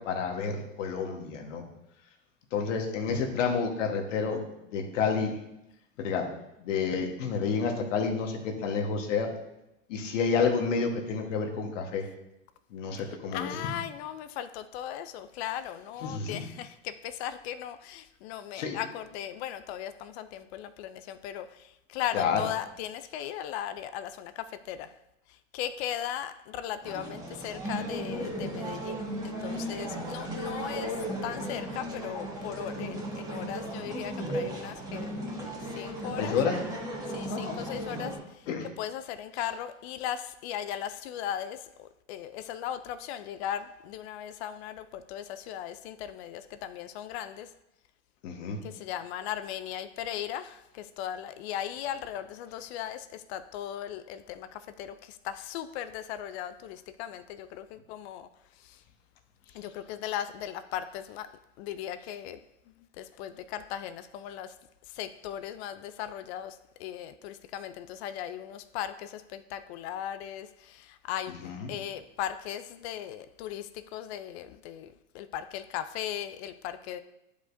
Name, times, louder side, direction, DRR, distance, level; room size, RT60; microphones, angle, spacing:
voice 1, 0.0-1.6 2.5-4.4 4.7-5.4 6.0-6.3 6.6-9.3 9.9-12.0 12.7-13.6 16.0-16.5 18.5-18.8 22.1-22.5 36.2-36.6 37.3-37.6 38.5-38.7 39.3-39.5 48.2-48.6 71.3-71.7, left 5 dB, 75° left, 3 dB, 1.4 m, -29 dB
voice 2, 13.3-21.5 21.9-24.9 25.5-30.9 31.2-35.1 35.8-36.4 37.1-38.1 38.8-47.5 48.8-54.9 55.2-58.3 59.5-61.3 61.6-62.4 63.0-64.5 65.0-66.5 66.8-74.9 75.1-77.0, left 10 dB, 55° left, 12 dB, 0.5 m, -37 dB
sound 1, 26.8-38.2, right 1 dB, 10° right, 1.8 m, -36 dB
11.0 x 5.1 x 2.6 m, 0.88 s
hypercardioid pair, 110°, 38 cm